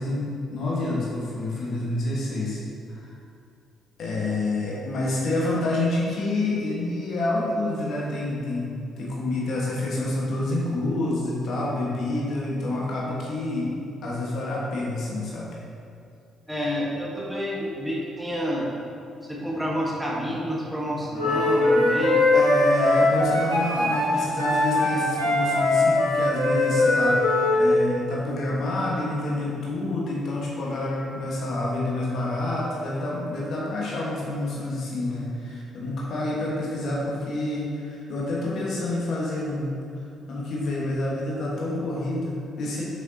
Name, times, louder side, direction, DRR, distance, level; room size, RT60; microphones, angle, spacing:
voice 1, 0.0-2.6 2.9-3.1 4.0-13.7 14.0-15.5 22.3-39.7 40.3-42.8, left 2 dB, 50° left, -5 dB, 1.5 m, -28 dB
voice 2, 16.5-18.7 19.2-22.3, equal, 5° right, -4 dB, 1.4 m, -29 dB
Wind instrument woodwind instrument, 21.1-27.6, left 2 dB, 85° right, 1.4 m, -21 dB
7.3 x 6.5 x 2.9 m, 2.5 s
figure-of-eight pair, 45°, 0 cm